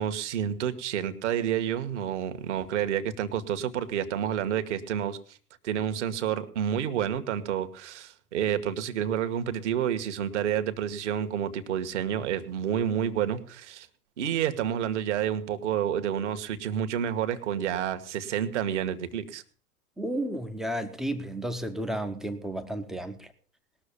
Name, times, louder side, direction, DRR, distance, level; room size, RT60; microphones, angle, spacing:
voice 1, 0.0-5.4 5.6-13.9 14.2-19.4, right 9 dB, 50° right, 1.5 m, -29 dB
voice 2, 20.0-23.2, right 1 dB, ahead, 0.6 m, -32 dB
19.5 x 6.5 x 6.9 m
figure-of-eight pair, 110°, 47 cm